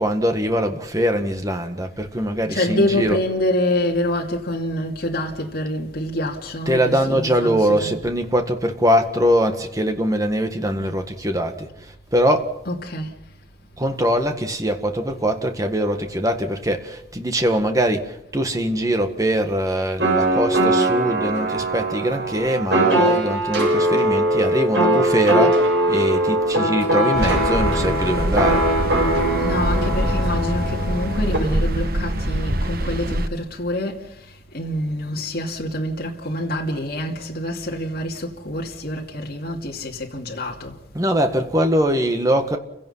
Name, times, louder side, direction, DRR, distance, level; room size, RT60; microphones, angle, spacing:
voice 1, 0.0-3.2 6.7-12.5 13.8-28.7 40.9-42.6, equal, 20° right, 1.8 m, -22 dB
voice 2, 2.5-8.0 12.6-13.2 29.4-40.8, left 1 dB, 55° left, 2.7 m, -26 dB
sound 1, 20.0-31.4, right 1 dB, 70° right, 6.9 m, -21 dB
sound 2, 27.1-33.3, right 1 dB, 55° right, 1.3 m, -24 dB
30.0 x 17.0 x 5.7 m
head